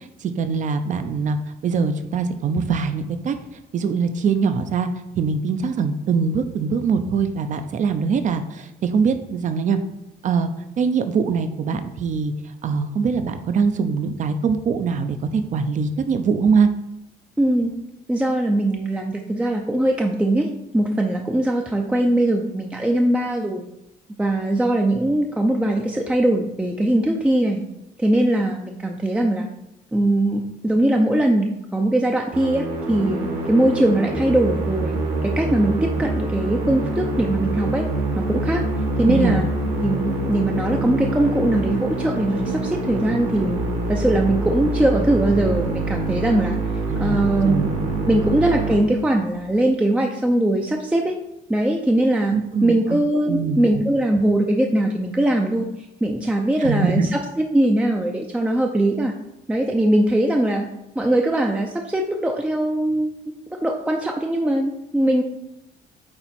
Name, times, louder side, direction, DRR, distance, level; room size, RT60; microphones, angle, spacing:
voice 1, 0.2-1.4 1.6-3.3 3.7-4.9 5.2-9.8 10.2-10.5 10.8-12.3 12.6-16.7 39.1-39.4 46.9-47.7 52.3-53.0 53.3-53.6 56.6-57.1, right 5 dB, 45° right, 9 dB, 0.7 m, -22 dB
voice 2, 17.4-17.7 18.1-23.6 24.2-27.6 28.0-29.5 29.9-37.9 38.2-38.6 39.0-39.5 39.8-43.6 43.9-46.6 47.0-47.7 48.1-51.2 51.5-52.4 52.6-55.6 56.0-59.1 59.5-60.7 61.0-63.2 63.6-65.2, right 1 dB, 5° right, 2 dB, 0.5 m, -21 dB
Musical instrument, 32.3-49.5, right 2 dB, 70° right, 2.2 m, -25 dB
8.7 x 3.0 x 4.3 m, 0.87 s
cardioid pair, 110°, 17 cm